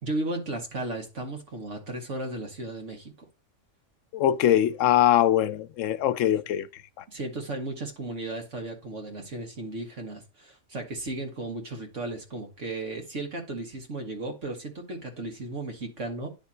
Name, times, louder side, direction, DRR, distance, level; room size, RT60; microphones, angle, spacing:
voice 1, 0.0-3.1 4.5-4.6 7.1-16.3, right 2 dB, 75° right, 2.2 m, -35 dB
voice 2, 4.1-6.7, left 11 dB, 90° left, 1.0 m, -22 dB
10.5 x 3.5 x 4.4 m
omnidirectional pair, 1.3 m